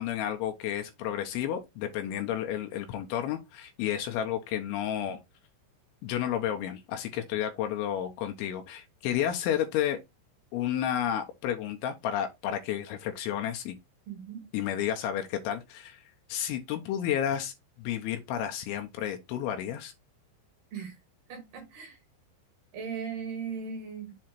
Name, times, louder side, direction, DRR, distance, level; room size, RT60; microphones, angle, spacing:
voice 1, 0.0-5.2 6.0-10.0 10.5-13.8 14.5-16.0 16.3-19.9, left 10 dB, 80° left, 2.9 m, -31 dB
voice 2, 14.1-14.4 20.7-21.0 21.3-22.0 22.7-24.2, right 6 dB, 60° right, 3.3 m, -38 dB
7.5 x 2.7 x 5.9 m
omnidirectional pair, 5.8 m